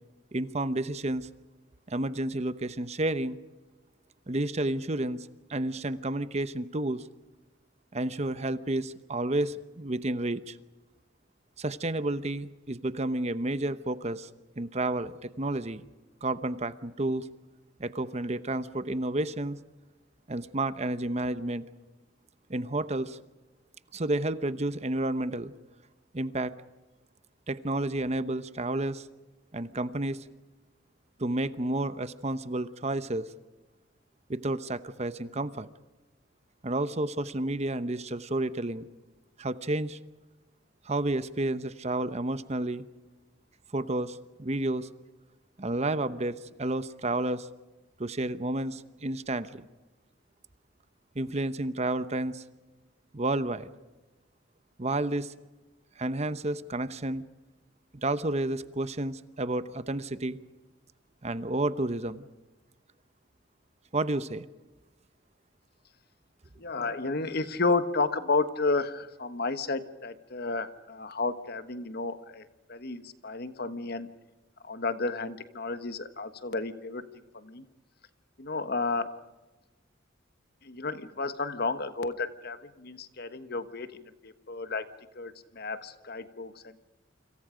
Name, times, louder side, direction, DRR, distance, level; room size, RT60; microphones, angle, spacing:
voice 1, 0.3-1.3 1.9-3.4 4.3-7.0 7.9-10.6 11.6-14.3 14.6-15.8 16.2-17.3 17.8-19.6 20.3-21.6 22.5-23.2 23.9-25.5 26.1-26.5 27.5-29.1 29.5-30.2 31.2-33.3 34.3-35.7 36.6-38.9 39.4-40.0 40.8-42.8 43.7-44.9 45.6-47.5 48.0-49.7 51.1-52.4 53.1-53.7 54.8-55.3 56.0-57.2 57.9-60.4 61.2-62.2 63.9-64.5, right 2 dB, 35° right, 13 dB, 0.9 m, -31 dB
voice 2, 66.6-74.1 74.6-77.0 77.3-77.6 78.4-79.1 80.6-84.9 85.1-86.9, left 3 dB, 55° left, 10 dB, 1.3 m, -32 dB
29.0 x 26.0 x 5.1 m, 1.1 s
head